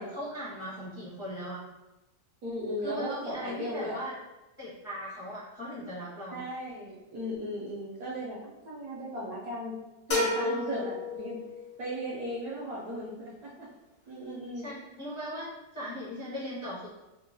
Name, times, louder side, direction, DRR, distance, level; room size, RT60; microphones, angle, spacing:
voice 1, 0.0-1.6 2.8-4.1 4.6-6.4 10.4-10.9 14.6-15.5 15.7-16.9, equal, 30° left, -10 dB, 0.5 m, -39 dB
voice 2, 2.4-4.0 6.3-9.8 10.1-11.4 11.8-13.7 14.1-14.7, equal, 70° right, -6 dB, 0.9 m, -36 dB
sound 1, 10.1-11.9, left 2 dB, 60° left, 1.1 m, -31 dB
3.6 x 2.1 x 2.6 m, 1.0 s
omnidirectional pair, 2.0 m